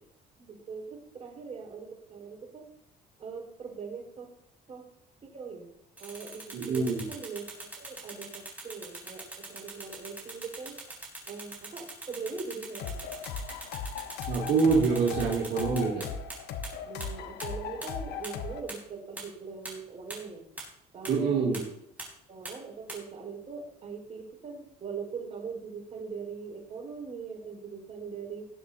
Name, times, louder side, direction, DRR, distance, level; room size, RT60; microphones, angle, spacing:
voice 1, 0.4-2.6 3.2-4.3 4.7-4.8 5.2-5.7 6.0-7.4 7.8-10.8 11.3-13.0 16.8-20.4 20.9-21.7 22.3-28.5, right 5 dB, 40° right, 0 dB, 4.8 m, -41 dB
sound 1, 6.0-16.4 16.6-16.7 17.0-17.1 17.4-17.5 17.8-17.9 18.2-18.3 18.7-18.8 19.2-19.3 19.7-19.8 20.1-20.2 20.6-20.7 21.1-21.2 21.5-21.6 22.0-22.1 22.5-22.6 22.9-23.0, right 2 dB, 10° right, 4.4 m, -41 dB
voice 2, 6.5-7.0 14.3-16.1 21.1-21.6, right 4 dB, 70° right, -4 dB, 2.5 m, -26 dB
sound 2, 12.8-18.6, left 6 dB, 75° left, 1.1 m, -38 dB
19.5 x 7.7 x 2.8 m, 0.78 s
cardioid pair, 110°, 17 cm